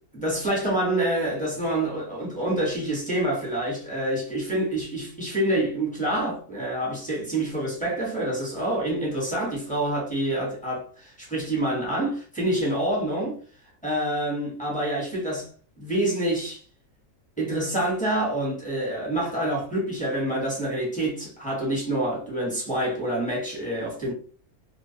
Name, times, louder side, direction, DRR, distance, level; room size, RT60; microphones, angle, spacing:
voice 1, 0.1-13.4 13.8-15.5 15.8-16.6 17.4-24.1, right 1 dB, 5° left, 0.7 m, -27 dB
2.4 x 2.0 x 2.6 m
omnidirectional pair, 1.5 m